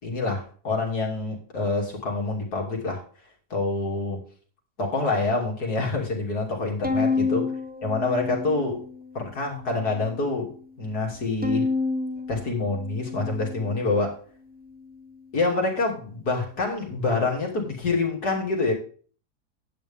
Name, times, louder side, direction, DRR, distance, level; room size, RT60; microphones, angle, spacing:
voice 1, 0.0-3.0 3.5-4.2 4.8-7.5 7.8-8.8 9.2-10.5 10.8-11.7 12.3-14.2 15.3-18.7, left 3 dB, 70° left, 3.5 m, -26 dB
Bowed string instrument, 6.8-9.2 9.7-10.4 11.4-13.9, left 4 dB, 5° right, 1.4 m, -29 dB
10.5 x 9.4 x 3.6 m
omnidirectional pair, 1.7 m